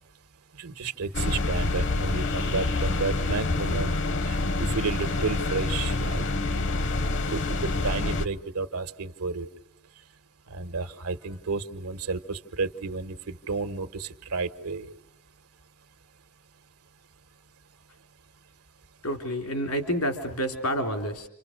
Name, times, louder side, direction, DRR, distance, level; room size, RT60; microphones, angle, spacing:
voice 1, 0.6-3.9 4.2-6.2 7.3-9.5 10.5-14.9, right 4 dB, 90° right, 9 dB, 1.5 m, -32 dB
sound 1, 1.1-8.3, left 2 dB, 60° left, 1.0 m, -27 dB
voice 2, 19.0-21.3, equal, 80° left, 5 dB, 3.7 m, -29 dB
29.0 x 26.5 x 6.6 m, 0.72 s
head